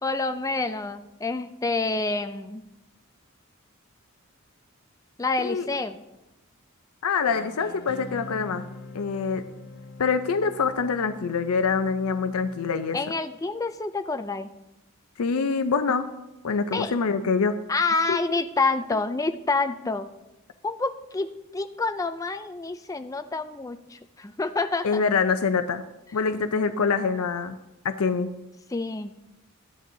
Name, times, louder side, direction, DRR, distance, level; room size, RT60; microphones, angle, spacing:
voice 1, 0.0-2.6 5.2-6.0 12.9-14.5 16.7-16.9 17.7-20.1 20.6-25.0 28.7-29.1, left 3 dB, 15° left, 10 dB, 0.4 m, -28 dB
voice 2, 7.0-8.6 8.9-9.4 10.0-13.0 15.2-16.1 16.4-17.6 18.1-18.2 24.8-25.8 26.1-27.6 27.8-28.3, left 5 dB, 80° left, 9 dB, 0.5 m, -25 dB
sound 1, 7.2-13.2, left 2 dB, 45° left, 0.7 m, -44 dB
14.0 x 10.0 x 2.7 m, 0.93 s
head